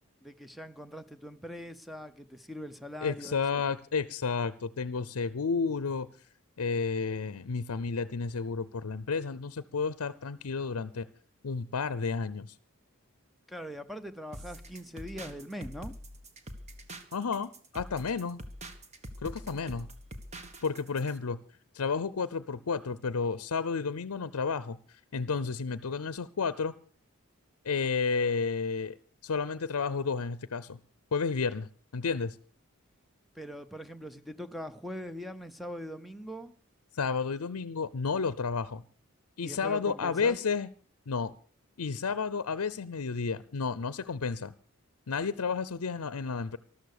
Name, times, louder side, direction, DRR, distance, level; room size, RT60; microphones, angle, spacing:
voice 1, 0.2-3.3 13.5-15.9 33.3-36.5 39.4-40.4, equal, ahead, 0.7 m, -42 dB
voice 2, 3.0-6.1 6.6-11.1 11.4-12.6 17.1-18.4 19.2-19.9 20.6-21.4 21.7-26.7 27.6-29.0 29.2-30.8 31.1-32.4 36.9-38.8 39.4-40.7 41.1-41.3 41.8-44.5 45.1-46.6, left 5 dB, 85° left, 0.6 m, -31 dB
sound 1, 14.3-21.2, right 1 dB, 30° right, 1.5 m, -45 dB
13.5 x 13.0 x 6.6 m
head